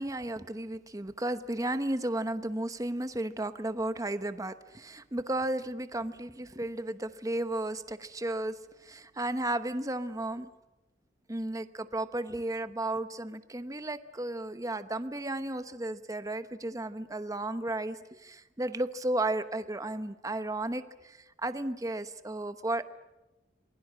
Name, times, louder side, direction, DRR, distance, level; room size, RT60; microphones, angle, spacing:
voice 1, 0.0-8.5 8.8-10.5 11.3-22.9, right 1 dB, 20° right, 11 dB, 1.0 m, -34 dB
27.5 x 21.5 x 7.6 m, 1.0 s
head